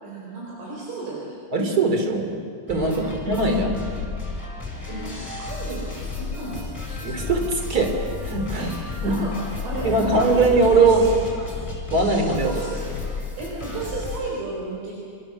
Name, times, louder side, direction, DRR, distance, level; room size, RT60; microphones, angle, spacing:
voice 1, 0.0-1.4 2.9-3.2 4.9-7.3 8.6-11.1 12.4-12.7 13.4-14.9, right 3 dB, 70° right, -3 dB, 6.7 m, -33 dB
voice 2, 1.5-2.3 2.7-3.8 7.0-8.0 8.2-8.7 9.0-9.2 9.8-11.0 11.9-12.5, right 3 dB, 25° right, 4 dB, 2.2 m, -20 dB
sound 1, 2.7-14.2, left 4 dB, 5° left, 4.2 m, -32 dB
27.5 x 26.5 x 7.2 m, 2.2 s
omnidirectional pair, 6.0 m